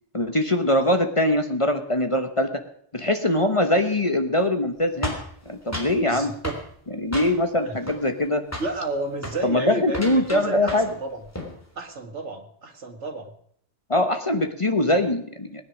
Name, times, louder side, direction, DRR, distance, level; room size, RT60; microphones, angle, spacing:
voice 1, 0.1-2.5 2.9-5.2 5.5-6.3 7.0-8.4 9.4-10.9 13.9-15.6, left 1 dB, 30° left, 7 dB, 1.2 m, -22 dB
sound 1, 5.0-6.0 6.4-6.7 7.1-7.6 7.9-8.3 8.5-8.8 9.2-9.4 9.9-11.0 11.2-11.6, left 1 dB, 15° left, 3.4 m, -33 dB
voice 2, 6.0-6.6 7.6-7.8 8.6-11.2 11.8-13.3, right 2 dB, 90° right, 2 dB, 2.1 m, -32 dB
19.5 x 10.0 x 6.3 m, 0.66 s
omnidirectional pair, 1.2 m